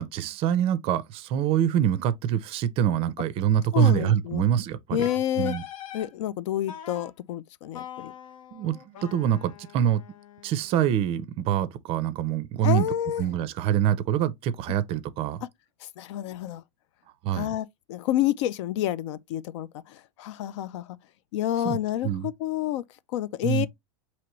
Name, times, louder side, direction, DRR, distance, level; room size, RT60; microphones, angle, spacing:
voice 1, 0.0-5.0 5.4-5.6 8.5-10.0 10.4-12.9 13.2-15.4 17.2-17.5 21.6-21.8 22.0-22.3 23.4-23.7, right 10 dB, 35° right, 0.4 m, -25 dB
voice 2, 3.7-4.4 4.9-5.6 5.9-8.1 12.6-13.2 15.4-15.5 15.8-16.6 17.3-21.0 21.3-22.8 23.1-23.7, left 12 dB, 65° left, 0.4 m, -29 dB
Wind instrument woodwind instrument, 5.0-6.1 6.7-7.1 7.7-10.7, left 9 dB, 85° left, 0.8 m, -43 dB
4.7 x 3.0 x 2.9 m
supercardioid pair, 145°, 17 cm